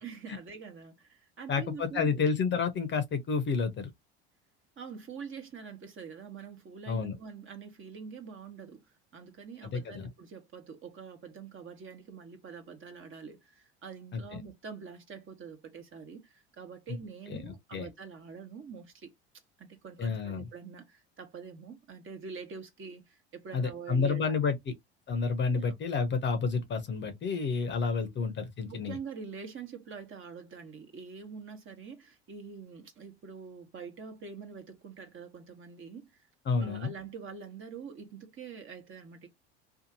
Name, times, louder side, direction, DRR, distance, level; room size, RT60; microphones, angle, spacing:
voice 1, 0.0-2.2 4.8-8.8 9.1-19.1 19.6-24.4 25.5-25.7 28.1-28.2 28.7-36.3 36.6-39.3, right 5 dB, 35° right, 1.1 m, -45 dB
voice 2, 1.5-3.9 6.9-7.2 9.6-10.1 14.1-14.4 17.3-17.9 20.0-20.5 23.5-24.7 25.1-29.0 36.5-36.9, left 5 dB, 35° left, 0.7 m, -30 dB
2.7 x 2.4 x 2.7 m
hypercardioid pair, 75°, 34 cm